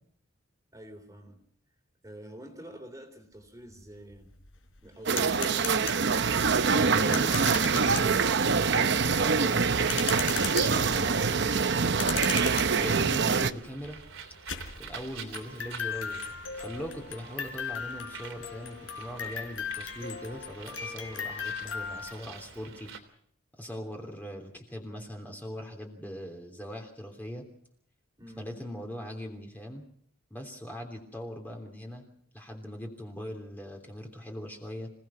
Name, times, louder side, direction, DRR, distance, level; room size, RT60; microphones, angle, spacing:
voice 1, 0.7-1.4 2.0-4.3 4.8-5.7 28.2-28.6, right 1 dB, 15° right, 6 dB, 3.4 m, -47 dB
sound 1, 3.7-3.8 4.1-22.1, left 7 dB, 75° left, 4.0 m, -38 dB
sound 2, 5.1-13.5, right 5 dB, 55° right, 0.8 m, -25 dB
voice 2, 6.8-10.2 10.5-12.3 12.7-14.0 14.8-22.9 23.5-27.5 28.4-29.9 30.3-32.0 32.3-34.9, equal, 10° left, 2 dB, 3.2 m, -40 dB
Bird, 9.0-23.0, right 6 dB, 75° right, 3.2 m, -48 dB
26.5 x 18.0 x 6.0 m, 0.65 s
head